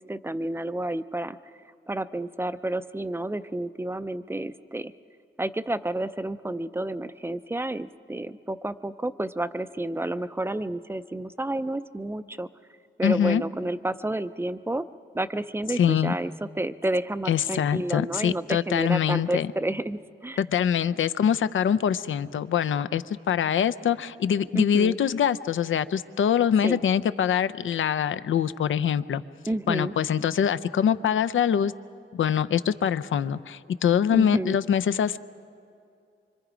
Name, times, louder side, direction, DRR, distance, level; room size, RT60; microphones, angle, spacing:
voice 1, 0.1-1.4 1.9-4.9 5.4-12.5 13.0-14.8 15.1-20.4 24.5-25.0 26.6-26.8 29.5-29.9 34.1-34.6, right 1 dB, 10° right, 12 dB, 0.4 m, -30 dB
voice 2, 13.0-13.4 15.8-16.1 17.3-19.5 20.4-29.2 29.7-31.7 32.1-35.2, left 8 dB, 75° left, 13 dB, 0.6 m, -24 dB
25.5 x 25.0 x 5.0 m, 2.4 s
wide cardioid pair, 140°, 20 cm